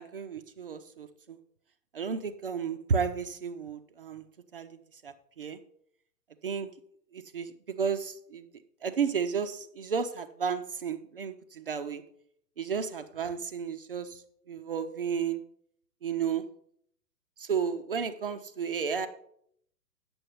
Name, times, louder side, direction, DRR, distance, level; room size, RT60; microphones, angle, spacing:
voice 1, 0.0-1.4 1.9-4.2 4.5-5.6 6.4-6.7 7.1-8.5 8.8-12.0 12.6-15.4 16.0-16.4 17.4-19.1, right 6 dB, 35° right, 9 dB, 0.5 m, -33 dB
8.6 x 7.0 x 5.3 m, 0.68 s
figure-of-eight pair, 125°, 50 cm